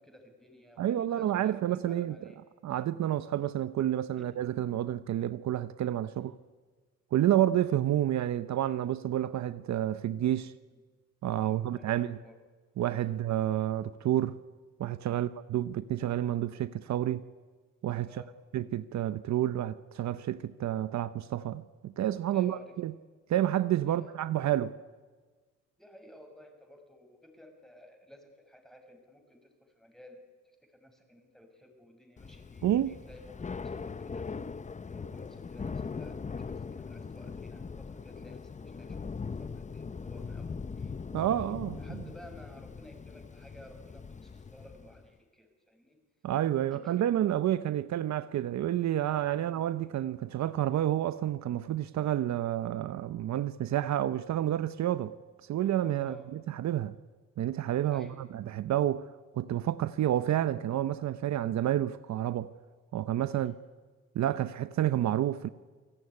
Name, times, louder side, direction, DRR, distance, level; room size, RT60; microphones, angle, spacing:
voice 1, 0.0-2.4 4.2-4.3 6.1-6.4 7.2-7.4 11.4-12.4 13.0-13.2 15.1-15.3 18.0-18.4 22.3-22.7 23.9-24.1 25.8-34.3 34.8-39.1 39.4-41.0 41.8-46.0 46.7-47.0 49.3-49.5 56.0-56.3 57.9-58.2 63.3-63.5, left 1 dB, ahead, 6.1 m, -54 dB
voice 2, 0.8-2.3 2.6-6.3 7.1-10.5 11.2-12.2 12.8-14.4 14.8-17.2 17.8-18.1 18.5-22.9 23.3-24.7 32.6-33.0 41.1-41.8 46.2-55.1 55.5-56.9 57.4-58.1 58.3-59.1 59.3-62.5 62.9-63.5 64.1-65.5, right 12 dB, 65° right, 0.8 m, -29 dB
Thunder / Rain, 32.2-45.1, left 5 dB, 25° left, 0.9 m, -41 dB
29.5 x 18.5 x 9.8 m
cardioid pair, 90°, 30 cm